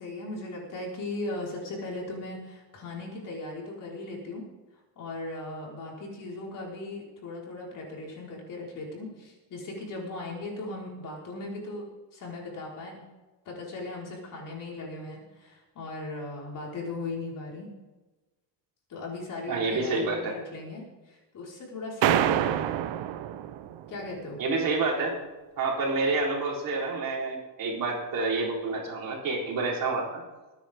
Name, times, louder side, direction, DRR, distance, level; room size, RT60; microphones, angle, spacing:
voice 1, 0.0-4.4 4.9-13.0 13.4-17.7 18.9-22.7 23.9-24.4, left 2 dB, 45° left, -3 dB, 5.0 m, -38 dB
voice 2, 19.5-20.4 24.4-25.2 25.6-30.2, right 3 dB, 50° right, -2 dB, 4.2 m, -28 dB
sound 1, 22.0-24.0, right 11 dB, 85° right, 1.0 m, -26 dB
23.0 x 9.9 x 3.7 m, 1.1 s
cardioid pair, 175°, 42 cm